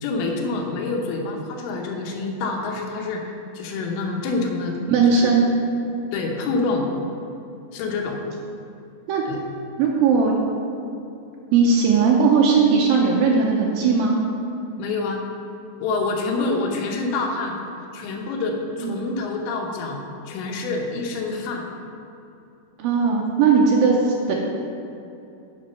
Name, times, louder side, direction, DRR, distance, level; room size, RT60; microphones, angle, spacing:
voice 1, 0.0-4.7 5.1-5.3 6.1-6.9 7.7-8.2 9.3-9.4 14.8-15.2 15.8-17.5 17.9-20.0 20.3-21.7, left 3 dB, 70° left, 1 dB, 2.6 m, -27 dB
voice 2, 4.9-5.5 9.1-9.2 9.8-10.3 11.5-14.2 18.8-19.0 22.8-24.3, right 5 dB, 85° right, -2 dB, 2.1 m, -18 dB
8.0 x 6.3 x 5.6 m, 2.8 s
omnidirectional pair, 5.0 m